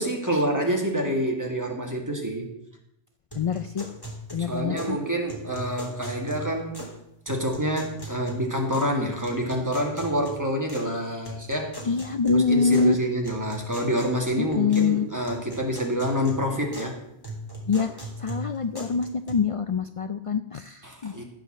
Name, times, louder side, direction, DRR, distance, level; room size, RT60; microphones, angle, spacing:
voice 1, 0.0-2.5 4.4-6.8 7.3-11.7 12.2-17.0 20.8-21.2, equal, 15° right, 1 dB, 2.0 m, -27 dB
voice 2, 3.3-3.9 4.3-5.0 11.9-13.0 14.4-15.1 17.7-21.2, left 5 dB, 60° left, 9 dB, 0.3 m, -25 dB
sound 1, 3.3-5.0 5.3-7.0 7.3-9.0 9.2-10.9 11.2-12.9 13.2-14.9 15.2-16.9 17.2-19.3, equal, 20° left, 2.8 m, -39 dB
15.0 x 5.0 x 7.5 m, 0.82 s
omnidirectional pair, 1.2 m